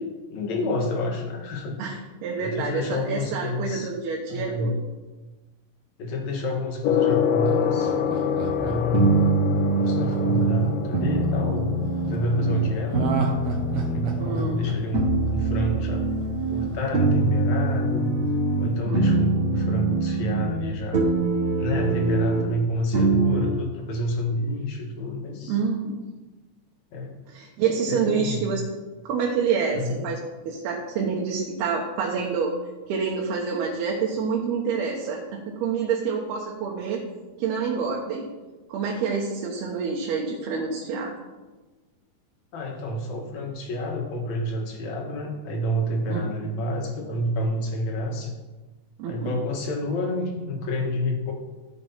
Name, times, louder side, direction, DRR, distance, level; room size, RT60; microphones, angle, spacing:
voice 1, 0.0-1.8 2.4-3.9 4.3-4.7 6.0-7.9 8.6-9.3 9.7-11.7 12.0-13.2 13.9-16.1 16.5-18.2 18.6-21.0 21.6-25.6 26.9-27.2 27.9-28.5 29.7-30.0 42.5-48.3 49.0-51.3, left 1 dB, 55° left, 1 dB, 2.5 m, -28 dB
voice 2, 1.8-4.8 14.2-14.6 18.9-19.0 25.5-26.0 27.3-28.6 29.0-32.5 32.9-37.0 37.4-38.3 38.7-41.1 46.1-46.3 49.0-49.4, right 5 dB, 85° right, -2 dB, 3.2 m, -27 dB
Gong, 6.8-18.8, left 8 dB, 75° left, 2.1 m, -29 dB
Laughter, 7.1-11.3 12.9-15.9 16.2-16.3, right 6 dB, 60° right, 1.6 m, -32 dB
sound 1, 8.5-12.7 12.9-14.7 14.9-18.7 18.9-20.7 20.9-22.4 22.9-23.5, right 3 dB, 40° right, 1.2 m, -24 dB
15.0 x 5.2 x 5.6 m, 1.2 s
omnidirectional pair, 4.4 m